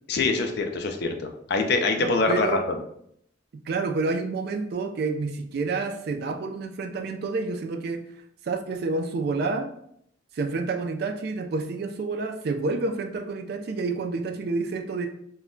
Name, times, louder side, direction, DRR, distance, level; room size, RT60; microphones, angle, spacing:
voice 1, 0.1-2.8, left 3 dB, 60° left, 5 dB, 0.4 m, -24 dB
voice 2, 2.0-2.6 3.7-8.1 8.4-9.7 10.3-15.1, right 3 dB, 55° right, 6 dB, 0.3 m, -29 dB
2.2 x 2.1 x 3.7 m, 0.69 s
head